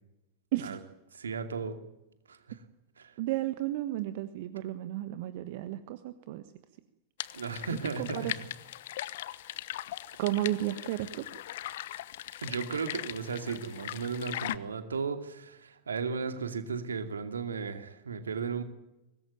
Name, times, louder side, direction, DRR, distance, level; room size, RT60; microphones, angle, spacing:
voice 1, 1.1-1.8 2.3-2.6 3.0-3.1 7.3-8.5 12.4-18.6, right 5 dB, 70° right, 8 dB, 2.6 m, -35 dB
voice 2, 3.2-6.5 7.7-8.3 10.2-11.3, right 14 dB, 50° right, 11 dB, 1.4 m, -33 dB
sound 1, 7.2-14.6, left 13 dB, 55° left, 1.0 m, -40 dB
24.5 x 20.0 x 9.3 m, 0.93 s
figure-of-eight pair, 90°, 0 cm